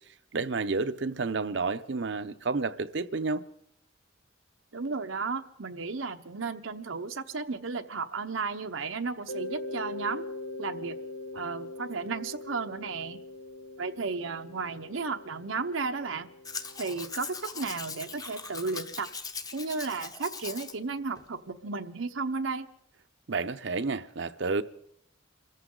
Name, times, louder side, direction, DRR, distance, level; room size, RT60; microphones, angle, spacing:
voice 1, 0.3-3.5 23.3-24.6, right 4 dB, 65° right, 0.7 m, -30 dB
voice 2, 4.7-10.2 10.6-11.0 11.3-13.2 13.8-16.3 16.8-19.1 19.5-22.7, right 4 dB, 90° right, 1.0 m, -34 dB
Mallet percussion, 9.3-17.9, left 2 dB, 85° left, 1.4 m, -42 dB
Domestic sounds home sounds, 16.4-20.8 21.2-21.3, left 4 dB, 20° left, 0.8 m, -40 dB
26.5 x 14.0 x 3.9 m
head